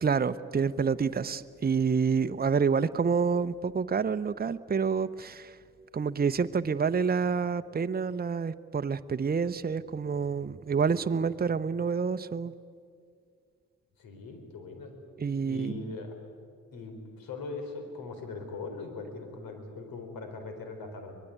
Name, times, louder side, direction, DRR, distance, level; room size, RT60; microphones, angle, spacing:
voice 1, 0.0-5.6 5.9-12.5 15.2-15.9, right 5 dB, 25° right, 10 dB, 0.8 m, -28 dB
voice 2, 14.0-14.9 15.5-16.1 16.7-21.1, left 3 dB, 75° left, 6 dB, 4.1 m, -40 dB
25.0 x 19.5 x 9.4 m, 2.2 s
supercardioid pair, 45°, 34 cm